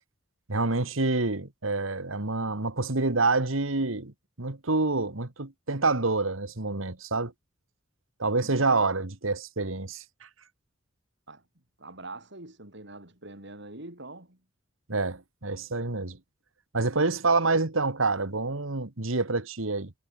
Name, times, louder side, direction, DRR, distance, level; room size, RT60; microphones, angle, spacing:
voice 1, 0.5-7.3 8.2-10.0 14.9-16.2 16.7-19.9, right 3 dB, 85° right, 2.0 m, -27 dB
voice 2, 8.3-8.7 11.3-11.5 11.8-14.4, right 2 dB, 60° right, 7.0 m, -44 dB
head